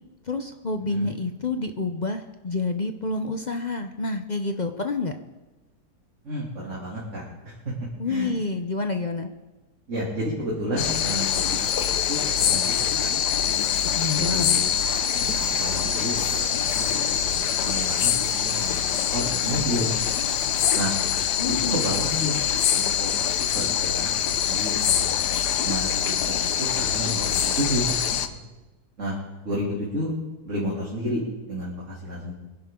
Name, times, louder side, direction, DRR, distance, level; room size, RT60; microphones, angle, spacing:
voice 1, 0.3-5.1 8.0-9.3 13.8-14.6 21.4-21.8 22.1-22.4, left 3 dB, 55° left, 6 dB, 0.5 m, -28 dB
voice 2, 6.2-7.2 8.1-8.3 9.9-13.1 13.4-13.5 14.1-14.7 15.2-18.1 18.3-19.9 20.7-20.9 21.7-22.4 22.7-23.2 23.5-25.3 25.6-27.9 28.2-28.4 29.0-29.2 29.4-30.1 30.5-31.2 31.5-32.3, equal, 50° right, -6 dB, 3.0 m, -31 dB
sound 1, 10.8-28.3, left 9 dB, 90° left, 1.4 m, -24 dB
23.5 x 11.0 x 3.7 m, 1.1 s
omnidirectional pair, 1.7 m